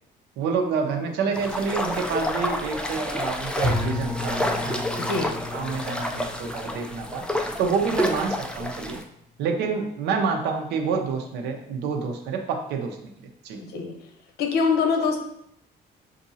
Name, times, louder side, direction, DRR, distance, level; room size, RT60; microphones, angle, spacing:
voice 1, 0.4-5.1 5.5-7.3 7.6-9.0 9.4-13.0 13.4-13.6, right 5 dB, 80° right, 4 dB, 0.8 m, -28 dB
sound 1, 1.3-9.0, left 1 dB, 5° left, 0.4 m, -29 dB
Bowed string instrument, 3.6-8.4, left 2 dB, 40° right, 1.3 m, -33 dB
voice 2, 5.0-5.3 13.7-14.0 14.4-15.2, left 5 dB, 75° left, 4 dB, 0.8 m, -23 dB
7.1 x 2.6 x 2.8 m, 0.75 s
cardioid pair, 110°, 17 cm